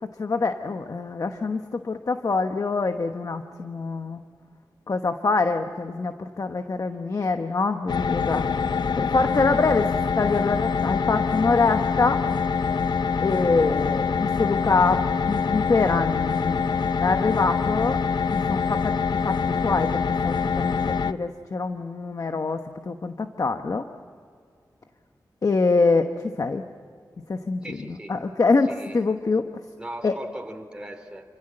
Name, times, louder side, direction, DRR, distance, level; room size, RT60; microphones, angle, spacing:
voice 1, 0.2-4.2 4.9-8.5 8.9-9.9 10.2-12.2 13.2-16.6 17.0-18.0 18.3-18.9 19.2-22.6 22.9-23.8 25.4-26.1 26.4-26.6 27.3-29.5 30.0-30.2, left 4 dB, 50° left, 7 dB, 1.1 m, -25 dB
sound 1, 7.9-21.1, left 5 dB, 75° left, 0.8 m, -25 dB
voice 2, 27.6-28.2 28.7-29.2 29.8-31.3, right 1 dB, 10° right, 3 dB, 3.4 m, -39 dB
29.0 x 25.5 x 7.8 m, 2.2 s
wide cardioid pair, 120°, 7 cm